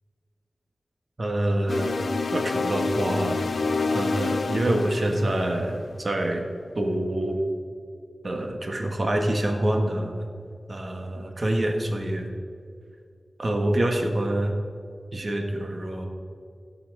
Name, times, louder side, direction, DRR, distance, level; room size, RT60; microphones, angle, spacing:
voice 1, 1.2-3.5 3.9-6.4 6.7-7.4 8.2-10.3 10.7-12.3 13.4-14.5 15.1-16.1, right 1 dB, 50° right, 3 dB, 1.5 m, -26 dB
sound 1, 1.7-6.0, left 4 dB, 70° left, 0.4 m, -28 dB
16.0 x 5.8 x 5.5 m, 2.3 s
wide cardioid pair, 80°, 0 cm